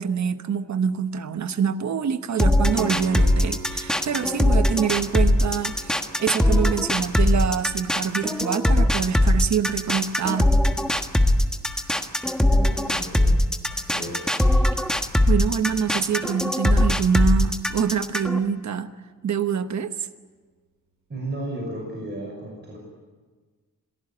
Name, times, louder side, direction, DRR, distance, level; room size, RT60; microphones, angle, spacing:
voice 1, 0.0-10.5 15.3-18.9 19.2-19.9, right 7 dB, 55° right, 10 dB, 1.2 m, -25 dB
sound 1, 2.4-18.4, left 1 dB, ahead, 1.4 m, -21 dB
Piano, 2.7-13.4 16.7-16.8, right 3 dB, 80° right, 5.7 m, -42 dB
voice 2, 12.5-13.4 13.7-14.3 21.1-22.8, right 1 dB, 35° right, -1 dB, 6.0 m, -34 dB
26.5 x 17.5 x 9.9 m, 1.4 s
wide cardioid pair, 130°, 33 cm